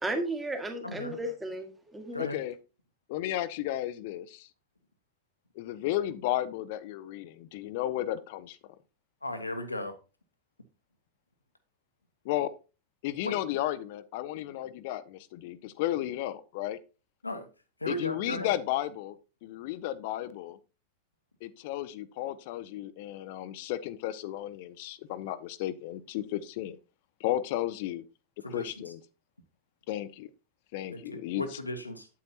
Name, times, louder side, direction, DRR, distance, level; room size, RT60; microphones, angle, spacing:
voice 1, 0.0-2.2, right 1 dB, 10° right, 1.7 m, -34 dB
voice 2, 0.8-1.2 2.1-2.4 9.2-9.9 13.2-13.4 17.2-17.5 17.8-18.5 28.4-28.7 30.9-32.1, left 1 dB, 85° left, 1.1 m, -36 dB
voice 3, 2.2-2.5 3.1-4.5 5.6-8.6 12.2-12.5 13.0-16.8 17.9-19.2 19.4-20.6 21.4-26.8 27.2-28.0 28.5-29.0 29.9-30.3 30.7-31.5, left 13 dB, 50° left, 0.6 m, -33 dB
8.8 x 8.5 x 2.8 m
figure-of-eight pair, 90°, 0 cm